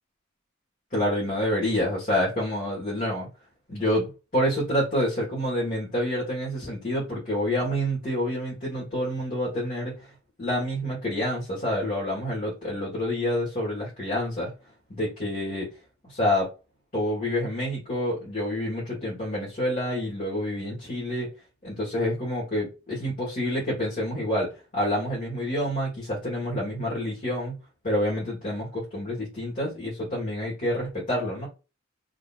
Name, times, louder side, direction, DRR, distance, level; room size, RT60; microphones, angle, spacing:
voice 1, 0.9-3.3 3.7-10.1 10.4-14.5 14.9-15.7 16.0-16.5 16.9-21.3 21.6-27.6 27.8-31.5, left 1 dB, 40° left, -6 dB, 1.6 m, -28 dB
3.8 x 3.0 x 2.4 m, 0.30 s
head